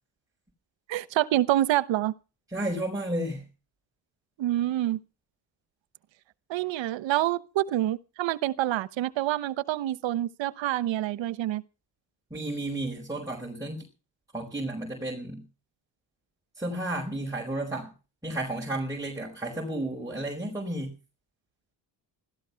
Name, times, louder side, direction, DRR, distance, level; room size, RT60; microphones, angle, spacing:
voice 1, 0.9-2.1 4.4-5.0 6.5-11.6, right 14 dB, 85° right, 1.1 m, -27 dB
voice 2, 2.5-3.4 12.3-13.8 14.3-15.4 16.6-17.9 18.2-20.9, right 1 dB, 10° right, 5.0 m, -32 dB
15.5 x 13.0 x 5.7 m
cardioid pair, 85°, 44 cm